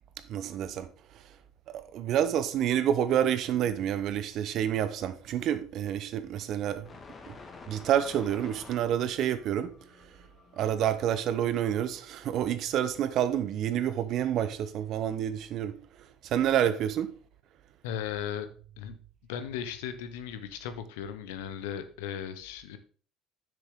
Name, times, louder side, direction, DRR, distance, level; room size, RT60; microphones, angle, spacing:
voice 1, 0.3-0.9 1.1-1.2 1.7-6.9 7.3-7.4 7.7-9.7 10.0-10.2 10.6-17.1, right 10 dB, 60° right, 0.8 m, -28 dB
sound 1, 6.8-12.0, left 4 dB, 35° left, 1.7 m, -51 dB
voice 2, 17.8-18.5 18.8-19.0 19.3-22.8, left 9 dB, 75° left, 0.9 m, -36 dB
7.0 x 6.7 x 3.7 m
hypercardioid pair, 70°, 0 cm